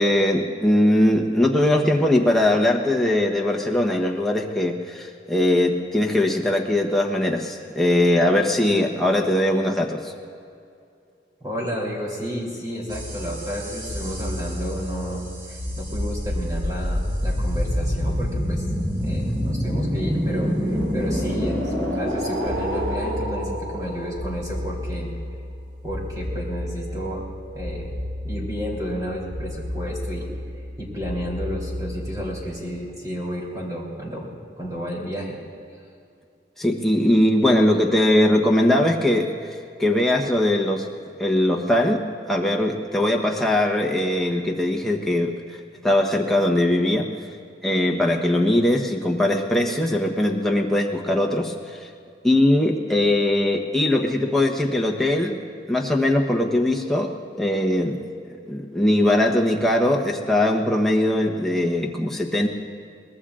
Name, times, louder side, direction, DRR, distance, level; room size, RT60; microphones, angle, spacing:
voice 1, 0.0-10.1 36.6-39.3 39.8-40.9 41.2-45.3 45.8-47.1 47.6-51.5 52.2-55.4 55.7-57.1 57.4-58.0 58.3-62.5, left 1 dB, ahead, -1 dB, 1.0 m, -20 dB
voice 2, 11.4-18.7 19.0-25.1 25.8-27.2 27.5-27.9 28.2-30.3 30.8-34.3 34.6-35.4, equal, 20° right, -4 dB, 3.2 m, -31 dB
sound 1, 12.9-32.5, equal, 80° right, 4.8 m, -28 dB
23.5 x 19.5 x 2.5 m, 2.5 s
head